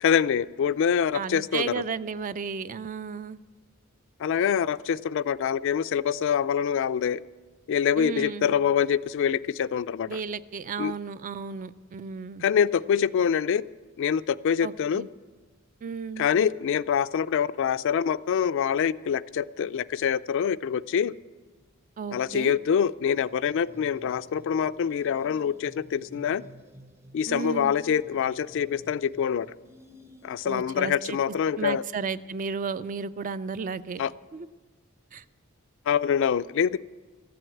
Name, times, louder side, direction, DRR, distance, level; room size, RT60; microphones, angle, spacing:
voice 1, 0.0-1.7 4.2-7.2 7.7-10.1 10.8-10.9 12.4-13.6 14.0-15.0 16.2-21.1 22.1-26.4 27.1-29.5 30.2-31.8 34.0-34.1 35.9-36.8, left 8 dB, 65° left, 15 dB, 0.3 m, -25 dB
voice 2, 1.1-3.4 8.0-8.5 10.1-12.4 14.6-15.1 15.8-16.3 22.0-22.6 27.3-27.7 30.4-31.2 31.6-34.0 34.3-34.5 35.1-35.2, right 5 dB, 40° right, 15 dB, 0.3 m, -34 dB
sound 1, 23.2-30.7, left 1 dB, 15° right, 0.7 m, -52 dB
14.0 x 7.8 x 7.8 m, 1.3 s
head